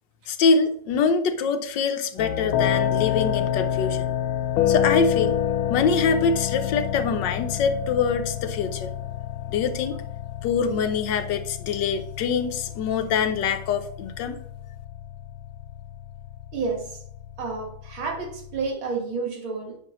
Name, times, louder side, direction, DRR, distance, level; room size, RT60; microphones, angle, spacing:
voice 1, 0.3-4.1 4.7-5.4 5.7-8.9 9.5-10.0 10.4-14.4, left 5 dB, 70° left, 7 dB, 1.3 m, -24 dB
sound 1, 2.2-18.7, left 10 dB, 85° left, 1.4 m, -28 dB
voice 2, 16.5-17.0 17.4-19.8, right 4 dB, 75° right, 1 dB, 2.3 m, -30 dB
8.8 x 5.5 x 3.0 m, 0.64 s
omnidirectional pair, 2.2 m